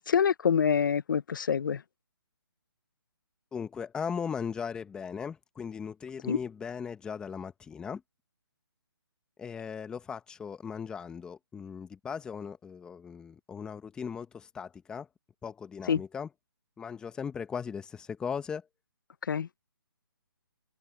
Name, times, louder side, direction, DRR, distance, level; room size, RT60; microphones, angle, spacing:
voice 1, 0.0-1.8 6.3-6.4 15.9-16.0 19.3-19.5, left 7 dB, 55° left, 0.8 m, -26 dB
voice 2, 3.5-8.0 9.4-15.1 15.4-16.3 16.8-18.7, left 6 dB, 5° left, 1.0 m, -38 dB
open air
hypercardioid pair, 160°, 13 cm